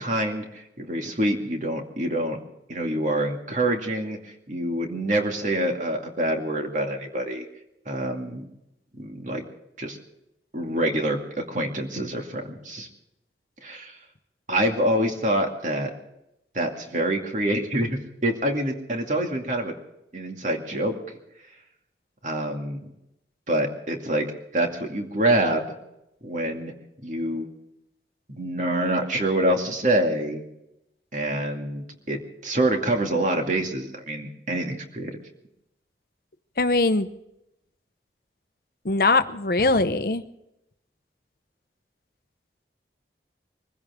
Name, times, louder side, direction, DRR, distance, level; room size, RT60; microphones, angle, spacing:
voice 1, 0.0-2.4 2.7-7.4 7.9-8.5 8.9-9.4 9.8-10.0 10.5-11.2 11.5-12.9 13.6-14.0 14.5-15.9 16.5-19.8 20.1-21.0 22.2-22.8 23.5-24.3 24.5-25.7 26.2-26.7 27.0-27.5 28.3-30.5 31.1-35.2, right 1 dB, 45° right, 3 dB, 2.4 m, -26 dB
voice 2, 36.6-37.1 38.8-40.2, left 3 dB, 55° left, 11 dB, 0.8 m, -21 dB
23.5 x 15.5 x 3.7 m, 0.85 s
head